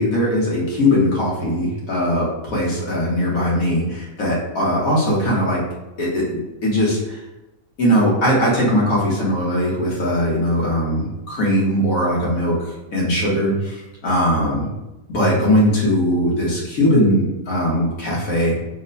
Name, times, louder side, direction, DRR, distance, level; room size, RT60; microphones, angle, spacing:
voice 1, 0.0-5.6 6.0-7.2 7.8-12.6 12.9-14.7 15.1-18.6, equal, 75° left, -5 dB, 1.6 m, -20 dB
3.7 x 2.2 x 3.9 m, 1.0 s
omnidirectional pair, 1.5 m